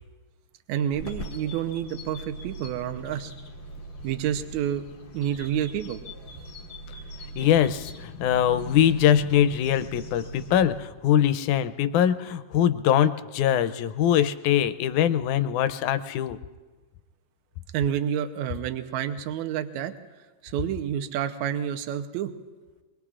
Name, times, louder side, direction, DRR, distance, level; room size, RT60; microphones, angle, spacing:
voice 1, 0.7-3.3 4.0-4.8 5.1-6.0 17.7-19.9 20.4-22.3, right 10 dB, 75° right, 7 dB, 2.0 m, -29 dB
sound 1, 0.9-10.8, right 1 dB, 45° left, 1.3 m, -41 dB
voice 2, 7.4-16.4, left 10 dB, 80° left, 11 dB, 2.1 m, -22 dB
26.5 x 21.5 x 2.5 m, 1.3 s
omnidirectional pair, 3.6 m